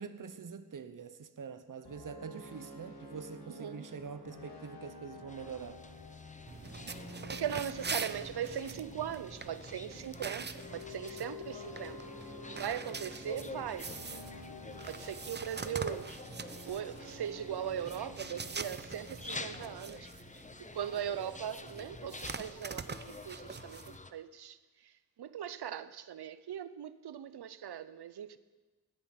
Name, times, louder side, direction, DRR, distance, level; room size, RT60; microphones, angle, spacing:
voice 1, 0.0-5.8, right 6 dB, 55° right, 0.9 m, -45 dB
sound 1, 1.8-21.0, left 2 dB, 90° left, 2.8 m, -50 dB
voice 2, 3.5-3.9 7.3-12.0 12.5-14.2 14.8-16.1 16.6-20.1 20.6-24.9 25.2-28.4, right 9 dB, 85° right, 0.7 m, -40 dB
sound 2, 5.3-24.1, left 3 dB, 20° left, 0.7 m, -49 dB
sound 3, 6.5-24.0, right 5 dB, 25° right, 0.6 m, -44 dB
19.0 x 8.1 x 5.9 m
cardioid pair, 65°, 38 cm